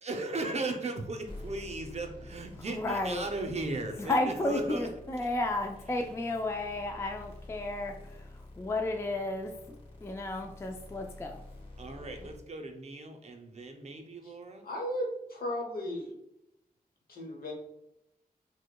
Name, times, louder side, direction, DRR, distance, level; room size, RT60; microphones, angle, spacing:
voice 1, 0.0-4.9 11.8-14.6, right 2 dB, 45° right, 5 dB, 0.5 m, -37 dB
sound 1, 1.3-12.4, left 2 dB, 35° left, 0.8 m, -49 dB
voice 2, 2.7-3.3 4.0-8.3 8.6-11.4 12.2-12.3, left 2 dB, 15° left, 3 dB, 0.3 m, -33 dB
voice 3, 14.6-16.1 17.1-17.5, equal, 70° left, 1 dB, 0.9 m, -35 dB
4.9 x 2.1 x 2.2 m, 0.84 s
cardioid pair, 75°, 16 cm